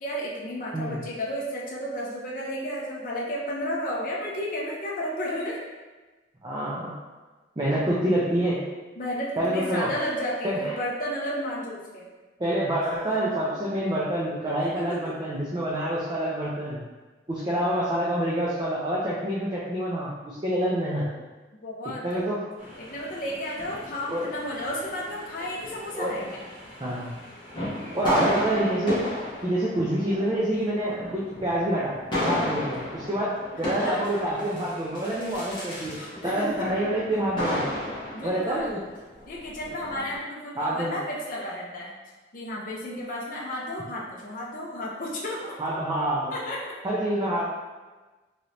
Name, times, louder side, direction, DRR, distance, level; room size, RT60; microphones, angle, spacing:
voice 1, 0.0-5.6 9.0-12.1 14.8-15.1 21.6-22.3 22.8-26.4 32.3-32.5 33.8-34.0 35.9-36.7 38.1-38.8 39.3-41.9 42.3-45.6 46.3-46.7, equal, 45° left, -4 dB, 0.5 m, -32 dB
voice 2, 6.4-6.9 7.6-8.6 9.4-9.9 10.4-10.7 12.4-16.8 17.3-21.1 22.0-22.4 24.1-24.3 25.9-26.2 26.8-27.1 27.9-29.1 29.4-32.0 32.2-37.7 38.2-38.8 40.6-41.0 45.6-46.3 46.8-47.4, right 1 dB, 20° right, -6 dB, 0.4 m, -27 dB
sound 1, 22.6-40.2, left 1 dB, 25° left, 0.9 m, -34 dB
3.1 x 2.9 x 2.6 m, 1.2 s
head